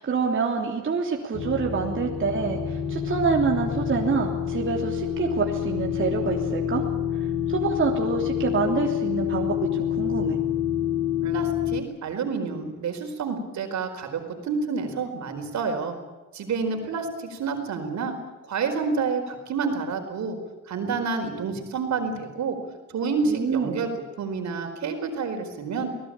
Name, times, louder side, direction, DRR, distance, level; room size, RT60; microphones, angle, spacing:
voice 1, 0.0-6.8 7.5-10.4 23.2-23.8, right 5 dB, 40° right, 0 dB, 3.2 m, -26 dB
sound 1, 1.3-11.8, left 9 dB, 50° left, 5.1 m, -27 dB
voice 2, 11.2-16.0 16.3-18.1 18.5-20.4 20.7-22.6 22.9-23.9 24.2-25.9, right 5 dB, 65° right, 5 dB, 4.7 m, -29 dB
24.5 x 19.0 x 8.8 m, 1.1 s
cardioid pair, 90°, 30 cm